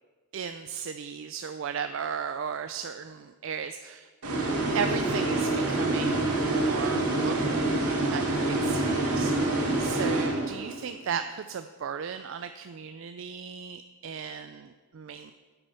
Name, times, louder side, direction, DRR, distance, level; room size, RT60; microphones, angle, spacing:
voice 1, 0.3-4.5 4.7-7.7 8.1-9.3 9.8-15.3, right 7 dB, 60° right, 9 dB, 0.3 m, -36 dB
sound 1, 4.2-10.9, right 2 dB, 90° right, 2.1 m, -26 dB
8.9 x 8.1 x 5.6 m, 1.4 s
head